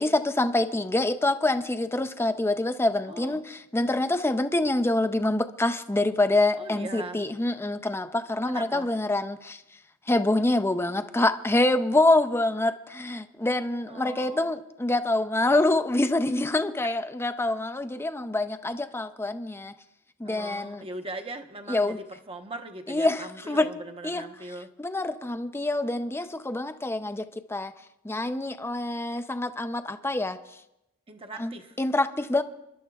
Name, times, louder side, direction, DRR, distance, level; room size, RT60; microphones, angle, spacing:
voice 1, 0.0-9.6 10.1-19.7 20.2-20.9 21.7-22.0 22.9-23.7 24.0-24.2 24.8-27.7 28.0-30.4 31.4-32.4, left 2 dB, 10° left, 10 dB, 0.5 m, -26 dB
voice 2, 3.1-3.4 6.6-7.2 8.4-8.9 13.9-14.5 16.8-16.9 20.2-24.7 31.1-31.8, right 2 dB, 25° right, 5 dB, 0.9 m, -40 dB
29.5 x 12.0 x 2.4 m, 0.88 s
head